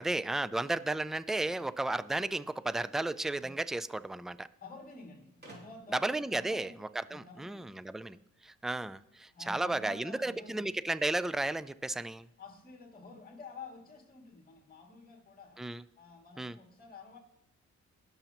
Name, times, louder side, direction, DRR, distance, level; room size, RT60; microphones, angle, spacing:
voice 1, 0.0-4.5 5.9-12.2 15.6-15.8 16.4-16.6, right 2 dB, ahead, 16 dB, 0.3 m, -34 dB
sound 1, 1.5-2.9 4.0-4.1 4.3-4.4 5.4-6.1, right 2 dB, 35° right, 2.9 m, -56 dB
voice 2, 4.6-6.8 7.1-7.8 9.3-10.7 12.4-15.6 16.0-17.2, left 4 dB, 30° left, 2 dB, 2.4 m, -50 dB
19.5 x 7.0 x 3.0 m, 0.87 s
cardioid pair, 90°, 30 cm